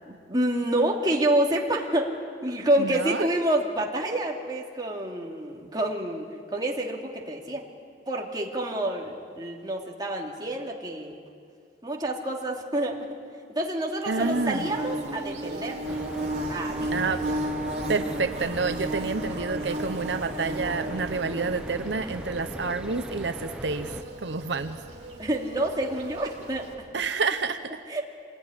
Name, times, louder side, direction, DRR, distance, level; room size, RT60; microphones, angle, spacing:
voice 1, 0.1-2.1 2.4-7.6 8.1-11.1 11.8-13.1 13.5-15.8 16.5-16.9 25.2-26.7 27.9-28.0, right 1 dB, 25° right, -1 dB, 2.7 m, -28 dB
voice 2, 2.8-3.3 14.1-14.7 16.9-17.2 17.9-23.9 24.2-24.8 26.9-27.8, right 4 dB, 80° right, 9 dB, 0.9 m, -29 dB
Bird / Buzz, 14.1-26.7, right 1 dB, 40° right, 4.4 m, -34 dB
sound 1, 15.8-24.0, equal, 5° right, 0.8 m, -39 dB
26.0 x 20.5 x 9.9 m, 2.4 s
head